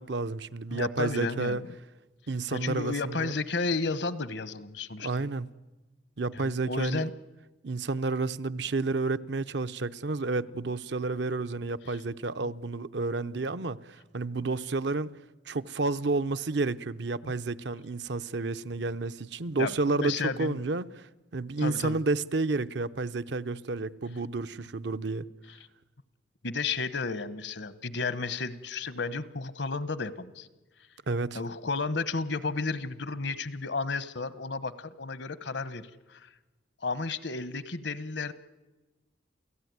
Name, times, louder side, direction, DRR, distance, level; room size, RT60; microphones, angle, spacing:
voice 1, 0.0-1.6 2.3-3.3 5.0-5.5 6.2-7.0 7.6-15.1 15.5-25.3 31.1-31.4, right 3 dB, 70° right, 0.7 m, -31 dB
voice 2, 0.7-1.6 2.5-5.3 6.3-7.1 11.9-12.0 12.4-12.5 17.2-17.3 19.6-20.6 21.6-22.0 26.4-30.5 31.3-36.3 36.8-38.3, left 4 dB, 70° left, 1.1 m, -33 dB
28.5 x 16.5 x 9.5 m
head